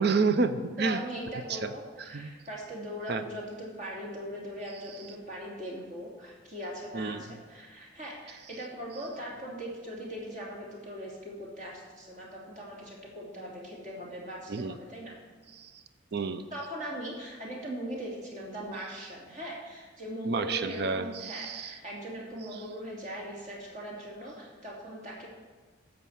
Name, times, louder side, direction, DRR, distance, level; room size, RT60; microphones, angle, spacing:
voice 1, 0.0-1.0 1.5-1.7 2.1-2.3 3.1-3.2 6.9-7.2 14.5-14.7 15.6-15.7 16.1-16.5 20.2-21.7, right 4 dB, 60° right, 10 dB, 0.6 m, -29 dB
voice 2, 0.8-15.1 16.5-25.3, equal, 40° right, -3 dB, 2.9 m, -40 dB
14.0 x 5.2 x 7.2 m, 1.4 s
head